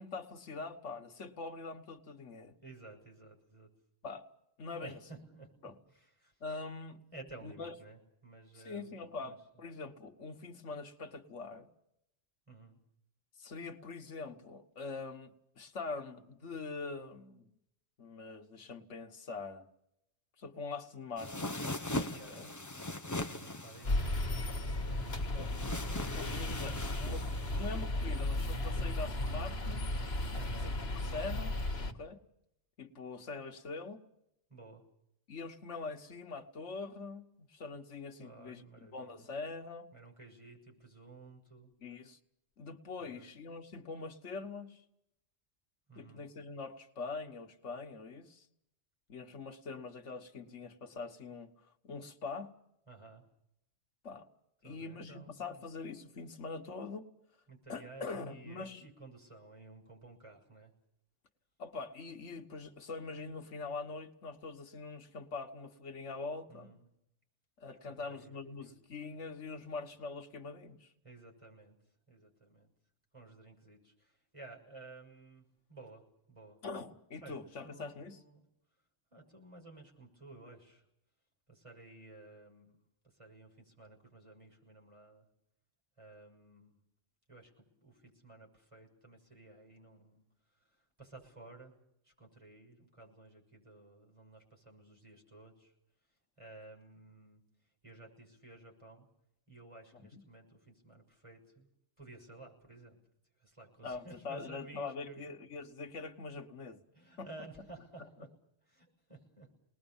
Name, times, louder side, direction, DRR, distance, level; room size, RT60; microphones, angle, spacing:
voice 1, 0.0-2.5 4.0-4.3 4.6-4.9 5.6-5.8 6.4-7.0 7.4-7.7 8.6-11.7 13.4-17.5 18.0-19.7 20.4-21.6 22.0-22.5 25.3-25.5 26.0-30.0 30.6-32.2 32.8-34.0 35.3-38.6 38.9-39.9 41.8-42.2 42.6-44.8 46.0-48.5 49.1-51.5 51.8-52.5 54.0-54.3 54.6-57.0 57.7-58.8 61.6-66.7 67.6-70.9 76.6-78.2 100.1-100.2 103.8-106.8 107.2-107.3, left 4 dB, 85° left, 7 dB, 1.8 m, -43 dB
voice 2, 2.6-3.7 4.8-5.5 5.9-6.4 7.1-8.9 9.2-9.4 12.5-12.8 22.1-22.6 23.0-26.2 30.3-30.7 34.5-34.8 38.2-39.3 39.9-41.7 43.0-43.4 45.9-46.3 52.9-53.3 54.6-55.6 57.5-60.7 66.5-66.9 67.7-69.0 71.0-71.8 72.1-72.7 73.1-76.6 77.2-78.4 79.1-80.9 81.5-82.8 83.0-85.2 86.0-86.8 87.3-90.2 90.5-91.7 92.0-95.7 96.4-97.4 97.8-99.1 99.5-101.7 102.0-103.0 103.4-105.3 106.9-108.3 108.6-109.5, right 3 dB, 25° right, 0 dB, 6.5 m, -54 dB
sound 1, 21.2-27.8, left 2 dB, 15° left, 0.8 m, -41 dB
sound 2, 23.8-31.9, left 1 dB, 60° left, 2.0 m, -35 dB
29.5 x 20.0 x 7.2 m, 0.80 s
omnidirectional pair, 1.2 m